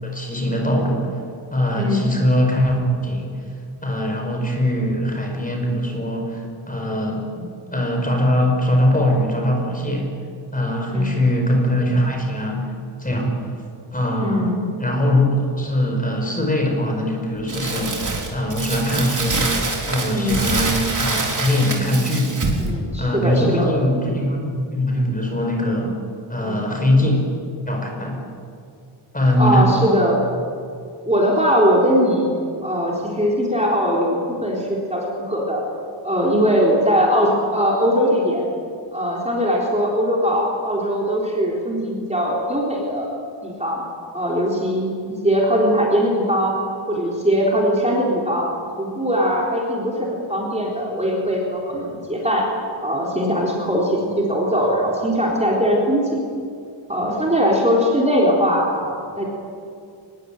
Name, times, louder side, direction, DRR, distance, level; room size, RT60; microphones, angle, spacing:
voice 1, 0.0-1.2 1.5-3.3 3.8-10.1 10.5-12.7 13.0-13.4 13.9-15.3 15.5-19.5 19.9-22.3 23.0-26.0 26.3-27.3 27.7-28.2 29.1-29.7, left 1 dB, 15° left, 1 dB, 5.3 m, -21 dB
voice 2, 1.7-2.0 10.9-11.2 14.2-14.7 20.1-20.4 22.6-23.7 26.4-26.7 29.4-30.2 31.0-35.6 36.0-38.5 38.9-43.1 43.4-43.8 44.1-46.6 46.9-48.5 48.8-52.5 52.8-56.2 56.9-59.2, equal, 15° right, -3 dB, 3.9 m, -20 dB
Crumpling crinkling, 17.5-22.7, right 3 dB, 40° right, 4.0 m, -25 dB
24.5 x 21.5 x 9.1 m, 2.3 s
wide cardioid pair, 170°, 49 cm